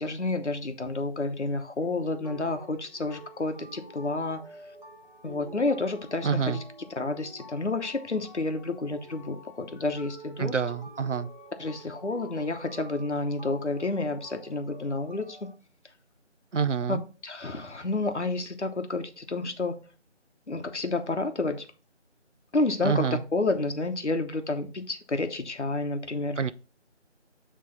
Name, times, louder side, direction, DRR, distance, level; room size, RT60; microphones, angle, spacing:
voice 1, 0.0-4.6 5.2-6.6 7.0-10.6 11.6-15.5 16.9-17.0 17.2-19.8 20.5-21.7 22.5-26.4, left 2 dB, 70° left, 1.1 m, -30 dB
sound 1, 1.8-15.5, equal, 40° right, 1.3 m, -48 dB
voice 2, 6.2-6.6 10.4-11.3 16.5-17.0 22.8-23.2 26.4-26.5, right 6 dB, 80° right, 0.7 m, -27 dB
8.8 x 3.3 x 4.1 m
figure-of-eight pair, 175°, 36 cm